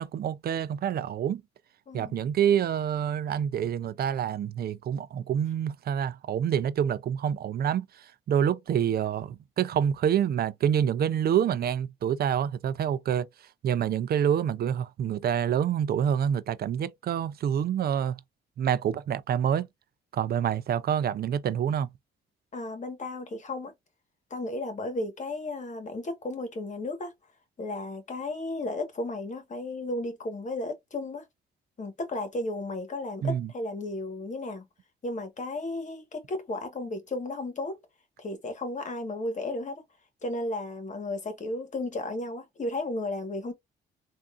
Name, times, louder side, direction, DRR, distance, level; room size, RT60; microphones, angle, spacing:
voice 1, 0.0-1.4 1.9-7.8 8.3-13.3 13.6-18.2 18.6-19.7 20.1-21.9 33.2-33.5, right 9 dB, 50° right, 0.4 m, -27 dB
voice 2, 1.9-2.2 20.4-20.5 22.5-23.7 24.3-27.1 27.6-31.2 31.8-34.7 35.0-37.8 38.2-39.8 40.2-43.5, left 2 dB, 40° left, 1.3 m, -34 dB
3.6 x 2.5 x 2.4 m
cardioid pair, 90°, 20 cm